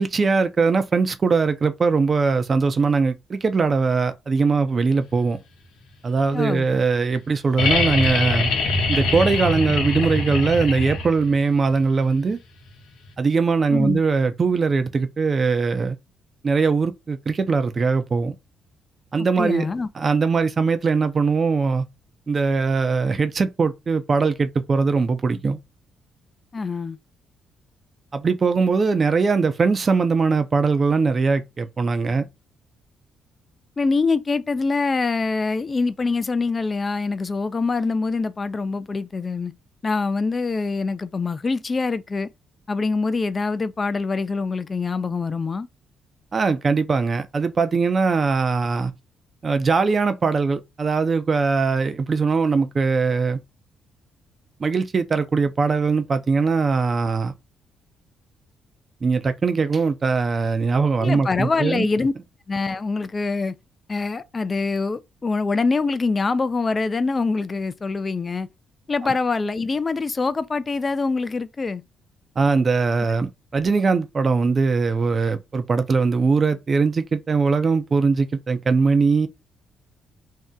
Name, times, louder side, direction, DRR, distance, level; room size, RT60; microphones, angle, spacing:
voice 1, 0.0-5.4 6.0-8.5 8.9-12.4 13.2-16.0 16.4-18.4 19.1-19.7 19.9-21.8 22.3-25.6 28.1-32.2 46.3-48.9 49.4-53.4 54.6-57.3 59.0-61.9 69.0-69.1 72.4-79.3, right 4 dB, 35° right, 0.5 m, -21 dB
voice 2, 6.3-6.7 13.7-14.0 19.4-19.9 26.5-27.0 33.8-39.5 39.8-42.3 42.7-45.7 61.0-62.1 62.5-63.5 63.9-68.5 68.9-71.8, left 4 dB, 30° left, 0.3 m, -24 dB
sound 1, 7.6-11.3 13.1-13.2, left 3 dB, 85° left, 0.9 m, -23 dB
2.7 x 2.1 x 3.6 m
cardioid pair, 90°, 0 cm